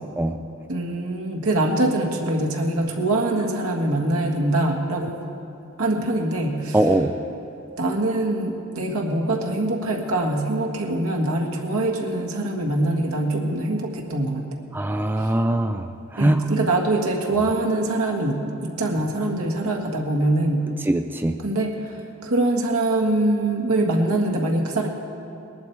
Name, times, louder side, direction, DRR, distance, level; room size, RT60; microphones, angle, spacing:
voice 1, 0.7-5.1 5.8-6.8 7.8-14.4 16.2-20.6 21.4-24.9, right 2 dB, 70° right, 1 dB, 1.7 m, -23 dB
voice 2, 6.7-7.1 14.7-15.9 16.1-16.4 20.9-21.4, right 1 dB, 10° right, 7 dB, 0.3 m, -21 dB
20.5 x 11.5 x 4.7 m, 2.8 s
head